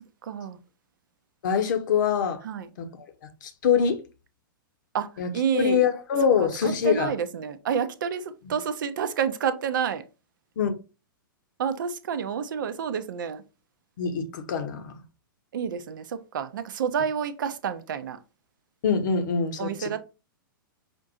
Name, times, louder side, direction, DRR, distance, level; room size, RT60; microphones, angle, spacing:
voice 1, 0.2-0.6 2.4-2.7 4.9-5.8 6.4-10.0 11.6-13.4 15.5-18.2 19.6-20.0, right 7 dB, 65° right, 0.5 m, -29 dB
voice 2, 1.4-2.4 3.4-4.0 5.2-5.3 5.5-7.1 10.6-10.7 14.0-14.9 18.8-20.0, left 6 dB, 60° left, 0.9 m, -24 dB
5.2 x 2.5 x 2.6 m
hypercardioid pair, 110°, 12 cm